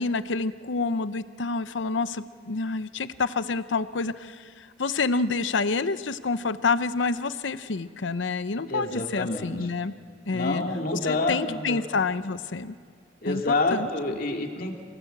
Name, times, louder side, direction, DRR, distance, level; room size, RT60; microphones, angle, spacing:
voice 1, 0.0-9.9 10.2-10.6 10.9-12.8 13.2-13.4 13.7-13.9, left 4 dB, 85° left, 13 dB, 0.7 m, -28 dB
voice 2, 8.7-9.5 10.3-11.8 13.2-14.8, left 2 dB, 50° left, 2 dB, 2.3 m, -28 dB
27.5 x 18.5 x 7.9 m, 2.2 s
head